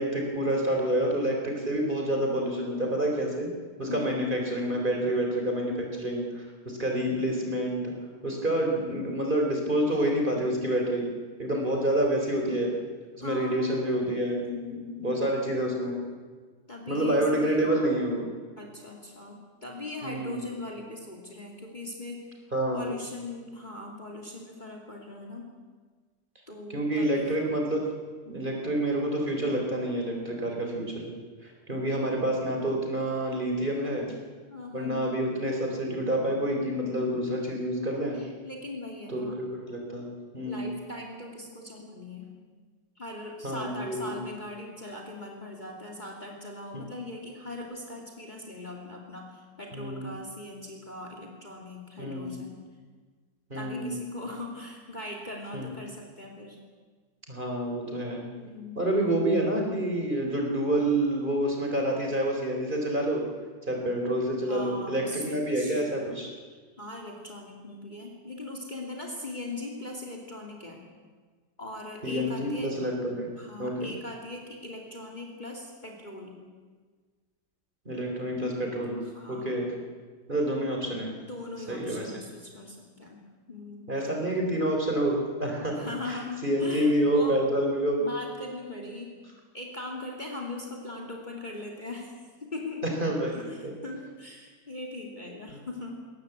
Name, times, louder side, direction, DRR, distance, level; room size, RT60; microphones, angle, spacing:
voice 1, 0.0-3.5 3.8-7.9 8.2-11.1 11.4-12.7 13.2-14.5 15.0-16.0 16.9-18.2 20.0-20.4 22.5-22.8 26.7-27.8 28.3-31.1 31.4-34.1 34.7-38.2 39.1-40.1 40.3-40.7 43.4-44.2 46.7-46.8 49.7-50.1 52.0-52.3 53.5-54.0 55.5-55.7 57.3-58.2 58.8-63.2 63.7-66.3 72.0-73.3 73.6-73.9 77.9-79.0 79.3-79.7 80.3-81.1 81.7-82.1 83.9-85.8 86.1-86.2 86.4-88.0 93.0-93.3 93.6-93.7, right 1 dB, 25° right, 1 dB, 4.0 m, -28 dB
voice 2, 3.9-4.2 13.2-13.7 14.3-15.3 16.7-17.7 18.6-22.3 22.7-25.5 26.5-27.3 34.5-35.0 38.1-39.4 40.4-42.3 43.0-52.6 53.5-56.6 58.3-58.8 64.4-65.8 66.8-70.8 71.6-72.7 73.4-76.4 79.0-79.4 81.2-83.2 83.5-83.9 85.7-87.5 88.0-89.1 89.5-92.8 93.2-95.9, left 2 dB, 25° left, 1 dB, 2.9 m, -40 dB
21.5 x 18.5 x 8.1 m, 1.5 s
omnidirectional pair, 2.0 m